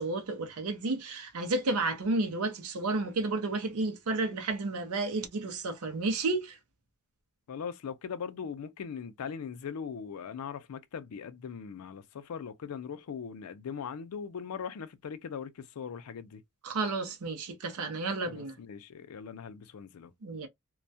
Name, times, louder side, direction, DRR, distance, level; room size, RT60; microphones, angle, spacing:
voice 1, 0.0-6.6 16.6-18.5 20.2-20.5, right 3 dB, 85° right, 0.6 m, -31 dB
voice 2, 7.5-16.4 18.2-20.1, left 6 dB, 85° left, 0.4 m, -40 dB
2.2 x 2.1 x 2.6 m
head